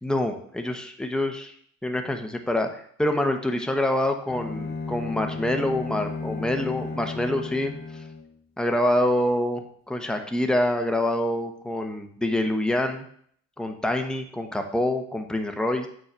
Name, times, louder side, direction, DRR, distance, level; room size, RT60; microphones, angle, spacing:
voice 1, 0.0-1.5 1.8-7.7 8.6-13.1 13.6-15.9, left 1 dB, ahead, 4 dB, 1.0 m, -26 dB
Bowed string instrument, 4.3-8.3, left 4 dB, 30° left, 2.2 m, -34 dB
6.9 x 4.5 x 4.5 m, 0.62 s
hypercardioid pair, 65°, 39 cm